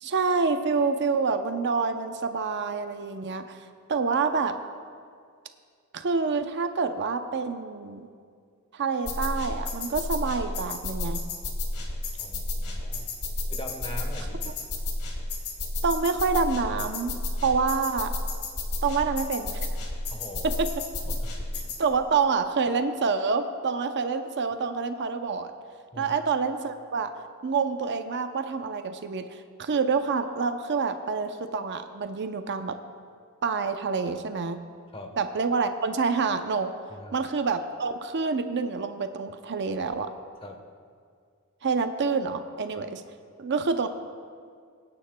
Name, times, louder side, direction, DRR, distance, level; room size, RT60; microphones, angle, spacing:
voice 1, 0.0-3.6 3.9-4.6 5.9-8.1 8.7-11.2 15.8-18.1 18.8-19.7 20.4-20.7 21.8-25.5 26.0-27.1 27.4-32.7 33.4-34.6 35.2-36.7 37.1-40.1 41.6-43.0 43.4-43.9, right 4 dB, 50° right, 7 dB, 0.6 m, -27 dB
sound 1, 9.1-21.8, left 2 dB, 80° left, 1.6 m, -32 dB
voice 2, 12.1-13.1 13.5-14.7 20.1-20.6 21.1-21.8 25.9-26.1 34.9-35.2 36.9-37.3 40.4-40.6, left 1 dB, 25° left, 4 dB, 1.0 m, -42 dB
23.5 x 9.8 x 2.2 m, 2.1 s
head